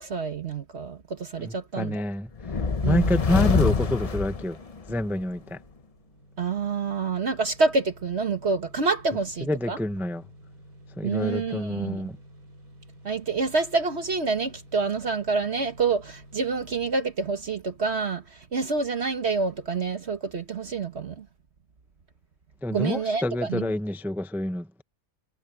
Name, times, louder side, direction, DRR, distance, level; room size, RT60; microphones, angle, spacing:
voice 1, 0.0-2.0 2.8-3.1 6.4-9.8 11.0-12.0 13.0-21.3 22.7-23.7, right 4 dB, 45° right, 1.5 m, -27 dB
voice 2, 1.4-2.3 2.8-4.6 4.9-5.6 9.4-10.2 11.0-12.2 22.6-24.8, left 1 dB, ahead, 0.5 m, -28 dB
sound 1, 2.4-5.1, left 5 dB, 30° left, 0.7 m, -25 dB
sound 2, 5.1-16.9, right 1 dB, 85° right, 6.9 m, -51 dB
omnidirectional pair, 1.6 m